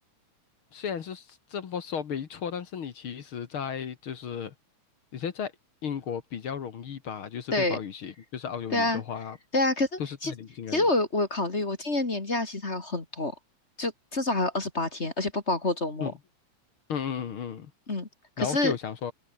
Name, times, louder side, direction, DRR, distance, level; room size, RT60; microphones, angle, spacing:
voice 1, 0.7-4.5 5.1-5.5 5.8-9.4 10.0-10.9 16.0-16.1 16.9-17.7 18.4-19.1, left 7 dB, 50° left, 2.1 m, -34 dB
voice 2, 9.5-10.3 10.7-13.3 13.8-16.1 17.9-18.1 18.4-18.8, left 2 dB, 25° left, 2.4 m, -27 dB
omnidirectional pair, 3.4 m